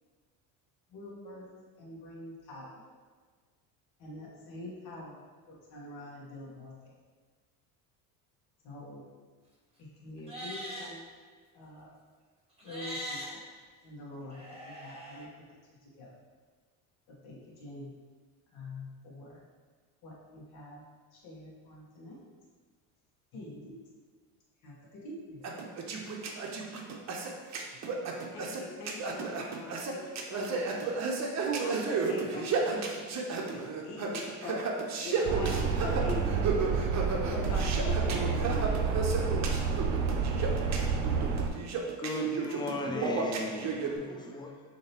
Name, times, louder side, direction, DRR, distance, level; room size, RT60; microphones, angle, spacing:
voice 1, 0.9-1.5 1.8-2.8 4.0-6.9 8.6-9.0 9.8-11.0 11.5-11.9 12.6-13.4 13.8-15.3 15.7-16.2 17.1-17.9 18.5-19.4 20.0-20.8 21.1-22.2 23.3-23.8 24.6-25.4, left 1 dB, 55° left, -5 dB, 1.3 m, -46 dB
Livestock farm animals working animals, 10.2-10.9 12.6-13.3 14.3-15.2, equal, 15° right, 1.4 m, -41 dB
sound 1, 25.4-43.9, right 4 dB, 40° right, 0.7 m, -33 dB
voice 2, 28.3-31.0 31.6-32.8 33.5-34.6 35.0-36.4 37.2-38.7, left 3 dB, 85° left, 1 dB, 0.8 m, -41 dB
sound 2, 35.3-41.5, right 5 dB, 90° right, 0.6 m, -29 dB
voice 3, 42.0-44.6, equal, 10° left, 3 dB, 0.4 m, -35 dB
6.2 x 2.9 x 2.9 m, 1.5 s
supercardioid pair, 100°, 44 cm